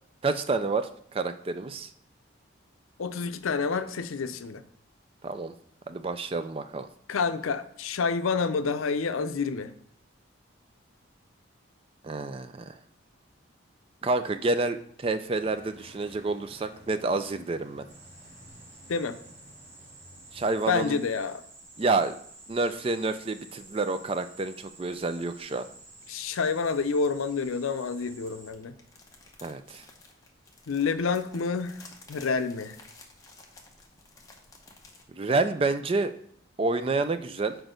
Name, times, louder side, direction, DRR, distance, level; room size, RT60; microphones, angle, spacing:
voice 1, 0.2-1.9 5.2-5.5 5.9-6.9 12.0-12.8 14.0-17.8 20.3-21.0 21.8-22.1 22.5-25.7 29.4-29.8 35.1-36.1 36.6-37.6, right 3 dB, 25° right, 10 dB, 0.3 m, -28 dB
voice 2, 3.0-4.6 7.1-9.7 18.9-19.2 20.7-21.4 26.1-28.7 30.7-31.8 32.1-32.8, left 5 dB, 85° left, 10 dB, 0.5 m, -28 dB
sound 1, 15.3-20.9, equal, 35° left, 2.1 m, -54 dB
sound 2, 17.9-28.5, right 2 dB, 50° right, 2.8 m, -51 dB
sound 3, 28.1-35.0, left 3 dB, 15° left, 0.8 m, -53 dB
6.1 x 4.6 x 5.1 m, 0.64 s
head